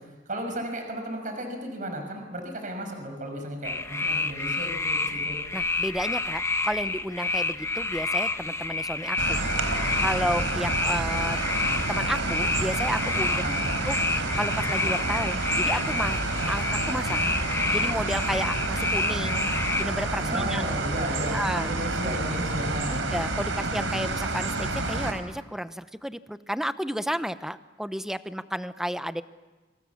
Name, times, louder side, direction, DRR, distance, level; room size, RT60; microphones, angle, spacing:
voice 1, 0.0-5.4 13.3-13.7 20.2-23.0, right 1 dB, 45° right, 4 dB, 6.1 m, -34 dB
sound 1, 3.6-19.8, left 3 dB, 15° left, 1.1 m, -29 dB
voice 2, 5.5-9.4 10.0-11.4 11.9-13.4 13.8-14.0 14.4-16.2 16.5-17.2 17.7-19.5 19.8-20.6 21.3-21.7 22.9-29.2, equal, ahead, 11 dB, 0.9 m, -32 dB
sound 2, 9.2-25.1, right 2 dB, 85° right, 4.3 m, -29 dB
28.5 x 26.5 x 7.2 m, 1.3 s
head